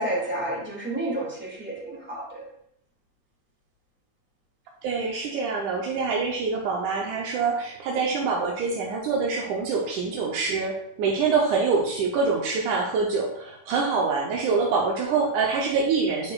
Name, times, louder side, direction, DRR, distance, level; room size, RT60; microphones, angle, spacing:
voice 1, 0.0-2.4, right 1 dB, 5° right, -5 dB, 1.5 m, -30 dB
voice 2, 4.8-16.3, right 4 dB, 80° right, -1 dB, 2.2 m, -25 dB
10.5 x 4.7 x 2.4 m, 0.72 s
omnidirectional pair, 3.6 m